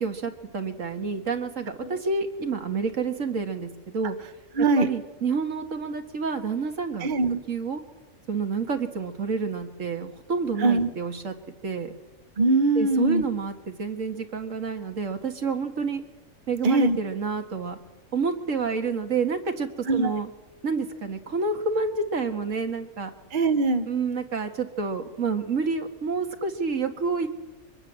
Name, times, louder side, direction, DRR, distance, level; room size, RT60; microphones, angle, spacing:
voice 1, 0.0-4.2 4.6-7.1 7.5-7.8 8.3-11.3 11.6-11.9 12.8-16.0 16.5-17.8 18.1-20.3 20.6-23.1 23.9-27.3, right 4 dB, 75° right, 5 dB, 2.1 m, -29 dB
voice 2, 4.6-4.9 7.0-7.4 10.6-10.9 12.4-13.2 16.6-17.0 19.9-20.2 23.3-23.8, right 3 dB, 40° right, 8 dB, 1.3 m, -22 dB
23.5 x 21.0 x 7.5 m, 1.1 s
omnidirectional pair, 1.4 m